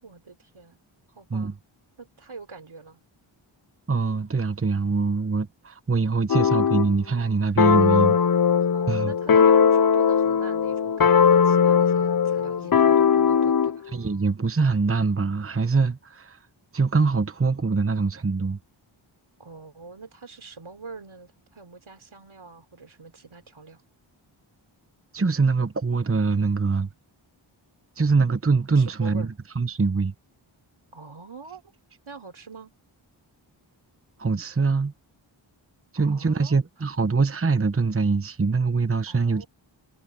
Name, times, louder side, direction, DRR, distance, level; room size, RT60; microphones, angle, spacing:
voice 1, 0.0-0.8 1.1-1.5 2.0-3.0 8.5-13.9 19.4-23.8 28.8-29.3 30.9-31.6 32.1-32.7 36.0-36.6 39.1-39.5, right 4 dB, 75° right, 4.1 m, -44 dB
voice 2, 3.9-8.2 8.9-9.1 13.9-16.4 16.7-18.6 25.1-26.9 28.0-30.1 34.2-34.9 35.9-39.4, right 4 dB, 25° right, 1.0 m, -23 dB
sound 1, 6.3-6.9 7.6-13.8, left 7 dB, 45° left, 0.7 m, -19 dB
cardioid pair, 45°, 48 cm